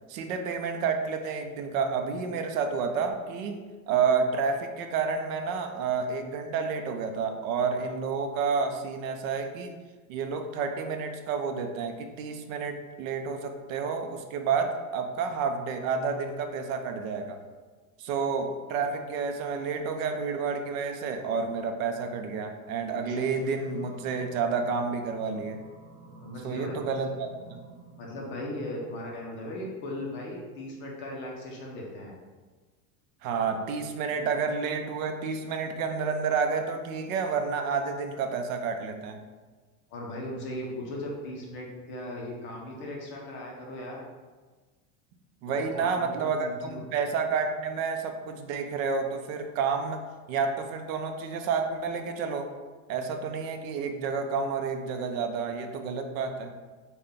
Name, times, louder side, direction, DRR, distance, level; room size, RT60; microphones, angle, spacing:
voice 1, 0.1-9.8 10.1-17.4 18.0-25.7 26.4-27.6 33.2-39.2 45.4-50.0 50.3-52.5 52.9-56.5, right 5 dB, 70° right, 6 dB, 0.5 m, -30 dB
sound 1, 22.9-29.6, right 3 dB, 45° right, 0.9 m, -51 dB
voice 2, 26.2-26.8 28.0-32.2 39.9-44.0 45.5-46.8, left 1 dB, 30° left, -2 dB, 0.4 m, -38 dB
3.9 x 2.2 x 3.4 m, 1.4 s
supercardioid pair, 160°, 43 cm